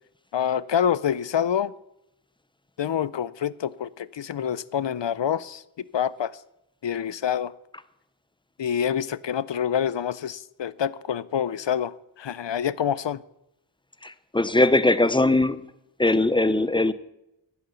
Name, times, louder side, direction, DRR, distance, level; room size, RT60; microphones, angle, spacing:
voice 1, 0.3-1.7 2.8-5.6 5.9-6.4 6.8-7.5 8.6-13.2, left 8 dB, 65° left, 0.5 m, -26 dB
voice 2, 14.0-15.6 16.0-16.9, left 2 dB, 10° left, 0.6 m, -20 dB
10.5 x 8.7 x 7.0 m
wide cardioid pair, 40°, 49 cm